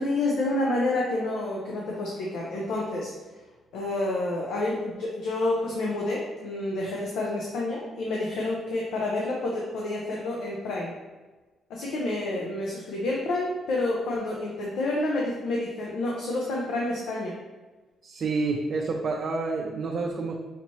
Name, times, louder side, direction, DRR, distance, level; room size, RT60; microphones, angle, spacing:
voice 1, 0.0-3.1 3.7-10.9 11.7-17.3, left 2 dB, 80° left, -3 dB, 0.7 m, -29 dB
voice 2, 18.0-20.3, right 3 dB, 50° right, 0 dB, 0.5 m, -28 dB
5.8 x 2.8 x 3.0 m, 1.2 s
cardioid pair, 90°, 0 cm